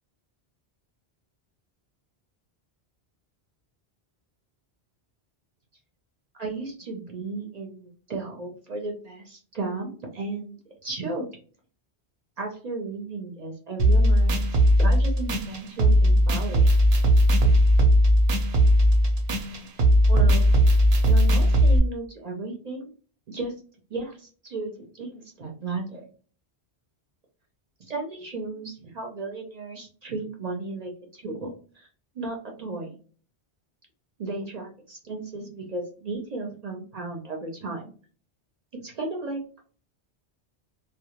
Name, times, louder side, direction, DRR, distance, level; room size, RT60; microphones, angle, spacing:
voice 1, 6.3-11.3 12.4-16.7 20.1-20.5 21.1-22.9 23.3-23.5 23.9-26.1 27.9-31.9 32.1-33.0 34.2-37.9 38.7-39.4, right 3 dB, 50° right, 1 dB, 0.5 m, -34 dB
sound 1, 13.8-21.8, equal, 75° right, 0.8 m, -18 dB
2.2 x 2.0 x 2.8 m, 0.40 s
omnidirectional pair, 1.1 m